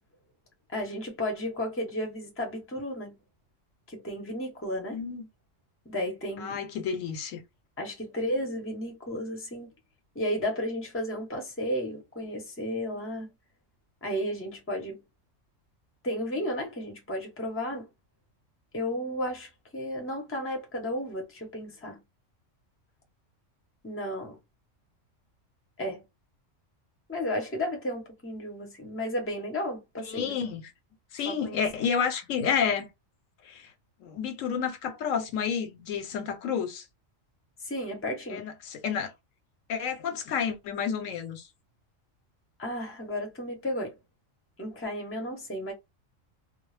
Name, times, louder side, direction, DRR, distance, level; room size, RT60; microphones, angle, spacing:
voice 1, 0.7-3.1 3.9-5.0 5.9-6.6 7.8-9.7 10.1-13.3 14.0-15.0 16.0-17.9 18.7-22.0 23.8-24.4 25.8-26.0 27.1-30.3 31.3-31.6 37.6-38.5 42.6-43.9 44.6-45.7, left 1 dB, 15° left, 0.6 m, -33 dB
voice 2, 4.9-5.3 6.4-7.4 30.0-30.7 31.1-32.9 33.4-33.7 34.0-36.9 38.3-39.1 39.7-41.5, left 7 dB, 80° left, 1.0 m, -30 dB
2.3 x 2.0 x 3.1 m
omnidirectional pair, 1.3 m